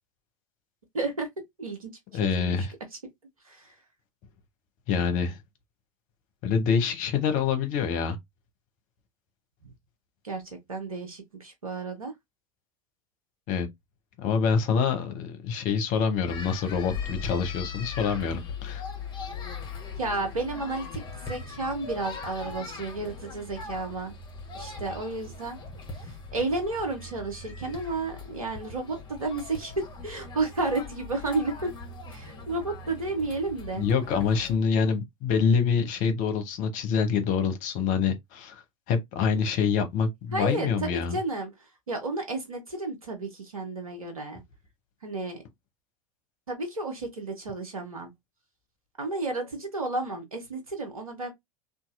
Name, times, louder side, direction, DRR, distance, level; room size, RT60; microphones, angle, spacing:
voice 1, 0.9-1.3 1.6-1.9 2.2-2.7 3.4-3.7 10.2-12.1 20.0-24.1 24.5-25.6 26.0-31.7 32.1-33.8 40.3-44.4 45.0-45.4 46.5-48.1 49.0-51.3, right 3 dB, 85° right, 0.6 m, -32 dB
voice 2, 2.1-2.7 4.9-5.4 6.4-8.2 13.5-13.7 14.2-18.8 33.8-38.6 38.9-41.2, left 6 dB, 45° left, 0.9 m, -26 dB
sound 1, 16.3-34.6, left 4 dB, 25° left, 1.1 m, -40 dB
2.8 x 2.5 x 2.4 m
figure-of-eight pair, 80°, 18 cm